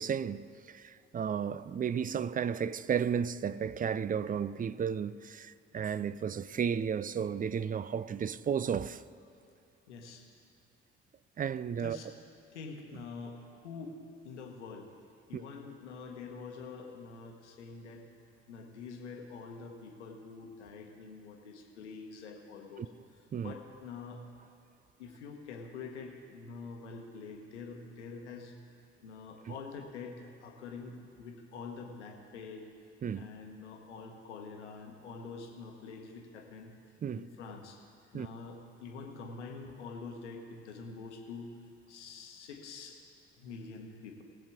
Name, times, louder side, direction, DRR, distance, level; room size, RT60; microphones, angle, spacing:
voice 1, 0.0-9.0 11.4-12.0 15.3-15.4 22.8-22.9 23.3-23.5 33.0-33.3 37.0-37.2 38.1-38.3, right 7 dB, 25° right, 0.4 m, -33 dB
voice 2, 9.9-10.2 11.8-12.1 12.5-14.0 14.2-14.9 15.3-18.1 18.5-24.2 25.0-28.6 29.0-32.7 33.1-36.8 37.1-41.5 41.9-43.0 43.4-44.2, left 4 dB, 80° left, 1.1 m, -46 dB
20.0 x 7.6 x 3.6 m
figure-of-eight pair, 40°, 34 cm